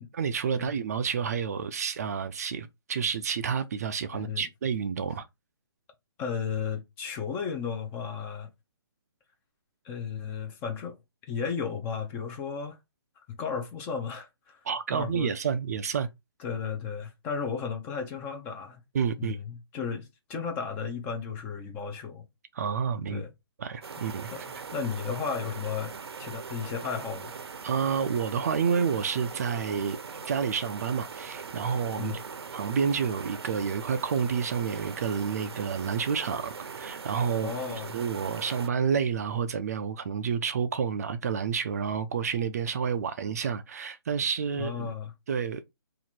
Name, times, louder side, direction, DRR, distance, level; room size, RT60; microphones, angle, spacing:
voice 1, 0.1-5.3 14.6-16.1 18.9-19.4 22.5-23.2 23.6-24.3 27.6-30.0 30.2-32.2 32.5-44.9 45.3-45.6, right 6 dB, 40° right, 0.3 m, -29 dB
voice 2, 4.1-4.5 6.2-8.5 9.8-11.0 11.2-12.8 13.3-14.6 14.9-15.3 16.4-18.8 19.2-22.2 23.1-23.3 24.3-24.4 24.7-25.9 26.2-27.3 32.0-32.2 37.4-38.0 44.6-45.1, left 6 dB, 15° left, 0.5 m, -34 dB
sound 1, 23.8-38.7, right 5 dB, 80° right, 0.6 m, -41 dB
2.8 x 2.5 x 4.3 m
hypercardioid pair, 155°, 13 cm